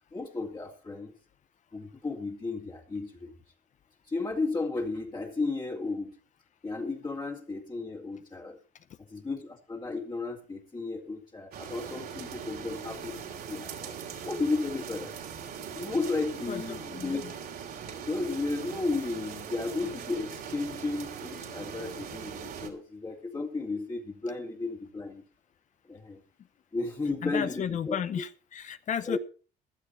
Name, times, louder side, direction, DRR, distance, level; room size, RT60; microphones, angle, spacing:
voice 1, 0.1-1.2 1.7-3.3 4.1-6.2 6.6-8.6 9.1-14.0 14.2-15.1 15.8-17.2 18.1-25.2 25.9-26.2 26.7-28.0 29.1-29.2, left 3 dB, 25° left, -1 dB, 2.2 m, -33 dB
sound 1, 11.5-22.7, right 7 dB, 65° right, 3.1 m, -41 dB
voice 2, 16.5-17.2 27.2-29.2, left 8 dB, 45° left, 13 dB, 0.8 m, -33 dB
15.5 x 11.5 x 4.3 m, 0.37 s
cardioid pair, 110°, 17 cm